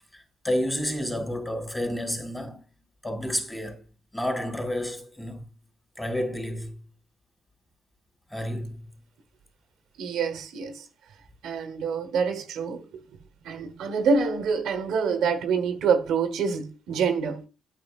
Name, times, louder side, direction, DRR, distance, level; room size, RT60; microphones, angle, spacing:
voice 1, 0.1-2.6 3.0-3.8 4.1-5.5 6.0-6.8 8.3-8.9, left 1 dB, 10° left, 2.7 m, -30 dB
voice 2, 10.0-10.9 11.4-13.0 13.4-17.5, right 5 dB, 80° right, 1.0 m, -26 dB
9.3 x 8.2 x 2.4 m
cardioid pair, 90°, 0 cm